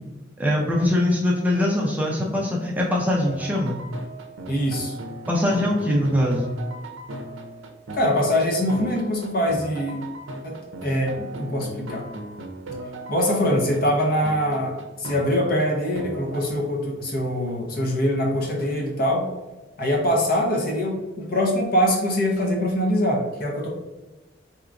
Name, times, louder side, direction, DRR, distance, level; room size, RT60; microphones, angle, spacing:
voice 1, 0.4-3.8 5.3-6.5, left 1 dB, 10° right, -3 dB, 0.5 m, -22 dB
sound 1, 3.2-16.4, right 1 dB, 75° right, 0.5 m, -37 dB
voice 2, 4.5-4.9 7.9-10.0 10.4-12.1 13.1-19.3 19.8-23.7, equal, 45° left, 0 dB, 0.8 m, -23 dB
4.6 x 2.9 x 2.5 m, 1.1 s
head